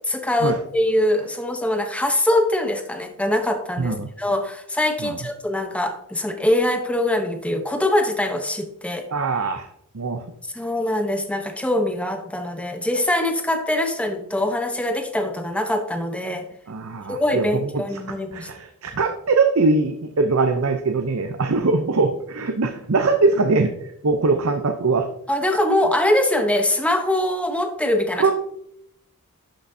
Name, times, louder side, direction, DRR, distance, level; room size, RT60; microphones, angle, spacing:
voice 1, 0.1-9.1 10.5-16.4 17.1-18.5 25.3-28.3, left 1 dB, 5° left, 5 dB, 0.8 m, -23 dB
voice 2, 3.8-4.1 5.0-5.2 9.1-9.7 9.9-10.2 16.7-17.8 18.3-23.7 24.0-25.1 28.2-28.3, right 3 dB, 65° right, 6 dB, 0.7 m, -21 dB
11.5 x 6.0 x 2.7 m, 0.75 s
head